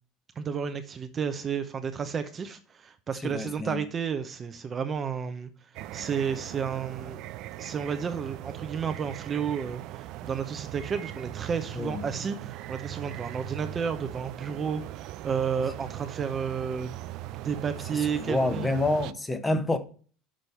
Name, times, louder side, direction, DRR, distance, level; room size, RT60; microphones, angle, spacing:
voice 1, 0.4-7.2 7.6-16.9 17.4-18.7, right 6 dB, 30° right, 0.8 m, -32 dB
voice 2, 3.2-3.8 11.8-12.0 18.2-19.8, left 2 dB, 15° left, 1.1 m, -27 dB
sound 1, 5.7-19.1, right 15 dB, 60° right, 0.4 m, -40 dB
6.3 x 5.1 x 5.6 m
supercardioid pair, 125°, 0 cm